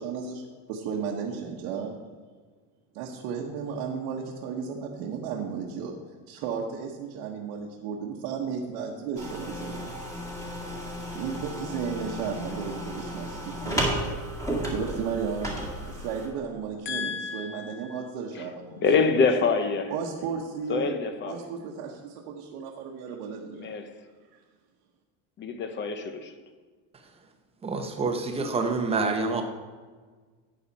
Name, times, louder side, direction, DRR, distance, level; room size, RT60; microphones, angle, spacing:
voice 1, 0.0-2.0 2.9-5.9 6.3-9.9 11.1-14.1 14.7-15.6 15.9-19.0 19.9-20.9 21.3-23.7 24.3-24.4, right 6 dB, 75° right, -2 dB, 1.3 m, -34 dB
sound 1, 9.2-16.3, equal, 10° left, 1.9 m, -33 dB
voice 2, 16.9-18.0 18.8-19.9 20.7-21.4 23.6-23.8 25.4-26.3, left 5 dB, 25° left, 9 dB, 0.8 m, -26 dB
voice 3, 27.6-29.4, right 3 dB, 15° right, 4 dB, 0.9 m, -27 dB
12.0 x 8.8 x 4.2 m, 1.5 s
cardioid pair, 165°, 41 cm